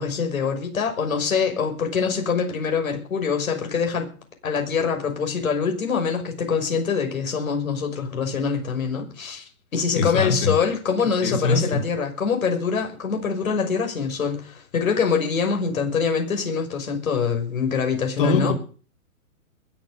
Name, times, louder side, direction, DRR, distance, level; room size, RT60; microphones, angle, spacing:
voice 1, 0.0-4.1 4.4-9.4 9.7-18.5, left 6 dB, 70° left, 3 dB, 6.1 m, -24 dB
voice 2, 9.9-10.5 11.2-11.8 18.2-18.5, left 4 dB, 35° left, 3 dB, 4.0 m, -22 dB
22.0 x 7.5 x 6.7 m, 0.40 s
hypercardioid pair, 165°, 43 cm